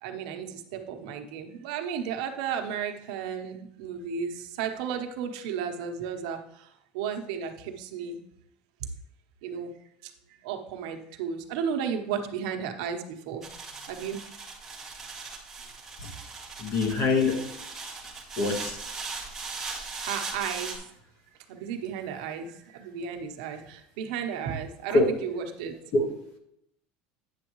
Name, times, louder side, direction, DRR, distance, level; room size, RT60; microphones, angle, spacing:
voice 1, 0.0-6.7 6.9-8.2 8.8-8.9 9.4-9.7 10.0-10.1 10.4-13.4 13.9-14.2 20.0-20.9 21.5-25.7, right 7 dB, 75° right, 5 dB, 1.0 m, -34 dB
sound 1, 13.4-20.8, right 4 dB, 10° right, 1.3 m, -39 dB
voice 2, 16.6-17.5 18.4-18.8 24.9-25.2 25.9-26.1, left 2 dB, 45° left, 3 dB, 1.5 m, -24 dB
9.2 x 7.2 x 3.1 m, 0.75 s
cardioid pair, 170°, 4 cm